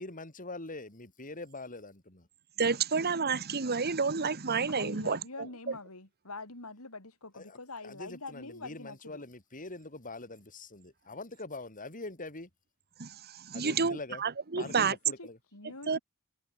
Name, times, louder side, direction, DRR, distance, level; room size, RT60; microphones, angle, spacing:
voice 1, 0.0-2.3 7.3-7.6 7.8-12.5 13.5-14.2 14.6-15.4, left 2 dB, 40° left, 4.9 m, -43 dB
voice 2, 2.6-5.2 13.0-14.9 15.9-16.0, right 5 dB, 45° right, 1.3 m, -30 dB
voice 3, 4.7-9.2 14.6-16.0, left 3 dB, 85° left, 5.6 m, -45 dB
head